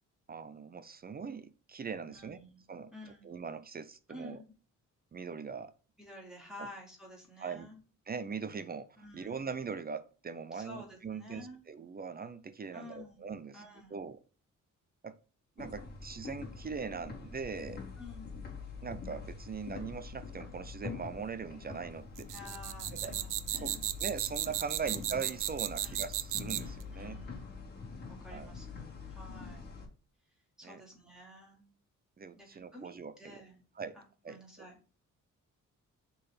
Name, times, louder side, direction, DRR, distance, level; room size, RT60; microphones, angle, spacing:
voice 1, 0.3-2.4 2.7-2.9 3.2-4.4 5.1-5.7 6.6-6.7 7.4-7.7 8.1-13.6 13.9-14.2 15.0-15.2 15.6-17.8 18.8-22.4 22.9-23.1 23.6-27.2 28.3-28.5 30.6-30.8 32.2-33.4 33.8-34.0 34.2-34.7, right 5 dB, 30° right, 0.5 m, -41 dB
voice 2, 2.1-2.6 2.9-3.4 4.1-4.6 6.0-7.8 9.0-9.5 10.5-11.6 12.7-13.3 13.5-14.0 18.0-18.3 22.3-23.8 24.8-25.0 25.8-26.0 26.9-27.4 28.2-28.8 29.1-29.7 30.6-31.7 32.4-33.6 33.9-34.7, left 1 dB, ahead, 2.9 m, -51 dB
sound 1, 15.6-29.9, left 4 dB, 30° left, 3.3 m, -45 dB
sound 2, 22.2-26.8, right 13 dB, 80° right, 0.6 m, -35 dB
6.5 x 4.0 x 5.5 m
wide cardioid pair, 155°, 31 cm